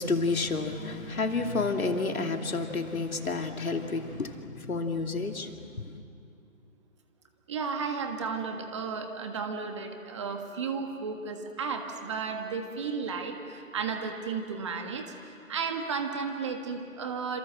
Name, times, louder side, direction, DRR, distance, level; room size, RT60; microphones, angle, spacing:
voice 1, 0.0-6.0, left 3 dB, 80° left, 3.0 m, -30 dB
voice 2, 7.5-15.0 15.5-17.4, right 5 dB, 20° right, 1.6 m, -33 dB
28.5 x 27.0 x 7.7 m
hypercardioid pair, 165°, 41 cm